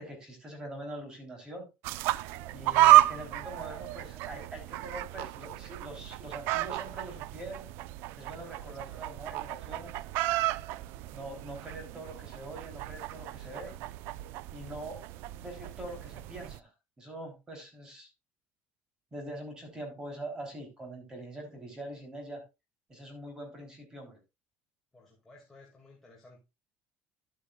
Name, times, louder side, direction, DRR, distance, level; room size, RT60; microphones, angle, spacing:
voice 1, 0.0-1.7 2.5-7.7 8.2-10.0 11.1-13.8 14.5-15.0 15.4-16.7 17.0-18.1 19.1-22.4 22.9-24.2, right 1 dB, 20° right, 3 dB, 3.6 m, -43 dB
sound 1, 1.8-16.6, right 15 dB, 65° right, 0.4 m, -30 dB
voice 2, 24.9-26.4, left 2 dB, 5° left, -3 dB, 2.4 m, -56 dB
12.0 x 8.6 x 2.4 m, 0.25 s
cardioid pair, 165°, 4 cm